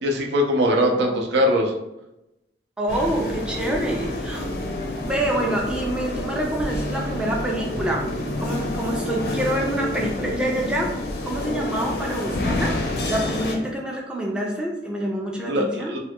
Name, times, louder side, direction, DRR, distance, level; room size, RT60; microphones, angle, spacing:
voice 1, 0.0-1.7 15.5-15.6 15.9-16.0, equal, 75° right, 0 dB, 0.5 m, -21 dB
voice 2, 2.8-4.5 5.0-8.0 8.4-10.9 11.2-12.8 13.1-15.9, right 1 dB, 5° right, -2 dB, 0.4 m, -26 dB
sound 1, 2.9-13.6, left 1 dB, 60° left, 0.5 m, -28 dB
3.2 x 2.2 x 2.8 m, 0.90 s
head